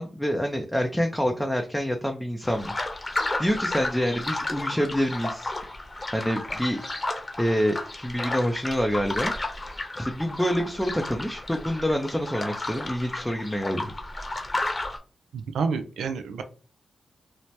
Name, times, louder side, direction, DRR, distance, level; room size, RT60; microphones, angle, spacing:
voice 1, 0.0-2.9 3.4-5.5 6.1-6.8 7.4-9.3 10.0-13.9, equal, 5° left, 2 dB, 0.5 m, -27 dB
sound 1, 2.4-15.0, left 2 dB, 35° left, 0.8 m, -33 dB
voice 2, 15.3-16.4, right 5 dB, 85° right, 7 dB, 0.3 m, -29 dB
2.8 x 2.1 x 3.1 m, 0.36 s
cardioid pair, 50°, 0 cm